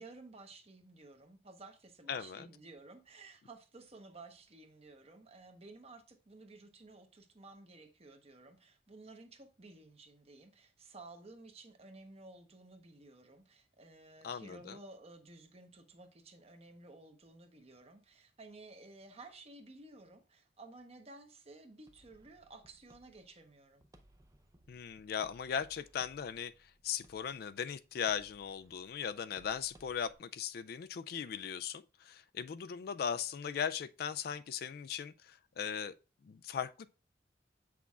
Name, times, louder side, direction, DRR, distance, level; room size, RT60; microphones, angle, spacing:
voice 1, 0.0-23.8, right 2 dB, 35° right, 1.0 m, -54 dB
voice 2, 2.1-2.5 14.2-14.8 24.7-35.9 36.2-36.9, left 7 dB, 60° left, 0.3 m, -38 dB
sound 1, 21.9-30.1, right 1 dB, 20° right, 0.6 m, -64 dB
8.3 x 6.0 x 2.4 m
head